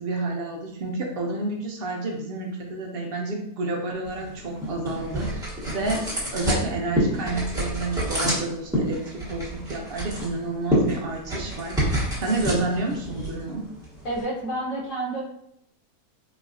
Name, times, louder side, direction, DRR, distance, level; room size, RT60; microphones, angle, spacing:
voice 1, 0.0-6.0 6.3-13.7, right 2 dB, 65° right, 0 dB, 0.5 m, -30 dB
sound 1, 4.0-14.2, equal, 5° right, 1.0 m, -28 dB
voice 2, 14.0-15.2, right 1 dB, 60° left, -6 dB, 1.2 m, -29 dB
4.0 x 2.6 x 2.5 m, 0.73 s
omnidirectional pair, 1.6 m